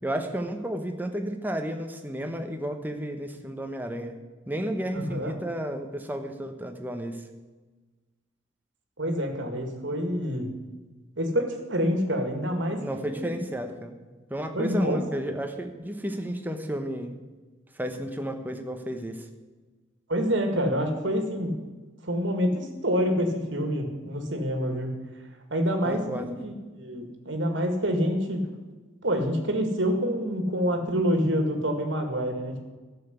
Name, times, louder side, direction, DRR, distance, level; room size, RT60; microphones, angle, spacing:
voice 1, 0.0-4.2 4.5-7.3 12.8-14.0 14.3-17.2 17.7-19.3 25.8-26.4, equal, 10° right, 5 dB, 1.0 m, -32 dB
voice 2, 5.0-5.3 9.0-10.5 11.2-13.4 14.6-15.0 20.1-21.5 22.0-24.9 25.5-28.4 29.0-32.6, equal, 70° right, 5 dB, 2.0 m, -27 dB
12.5 x 7.0 x 8.1 m, 1.3 s
head